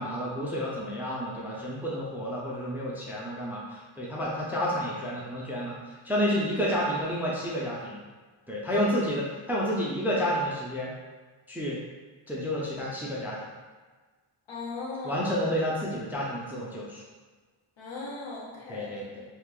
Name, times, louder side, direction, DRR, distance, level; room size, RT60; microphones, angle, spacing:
voice 1, 0.0-5.8 6.0-8.0 8.5-10.9 11.5-11.8 12.3-13.4 15.0-17.0 18.7-19.2, equal, 5° right, -5 dB, 0.4 m, -30 dB
voice 2, 14.5-15.3 17.8-19.1, left 3 dB, 65° left, -5 dB, 1.0 m, -38 dB
2.8 x 2.4 x 3.6 m, 1.4 s
wide cardioid pair, 140°, 48 cm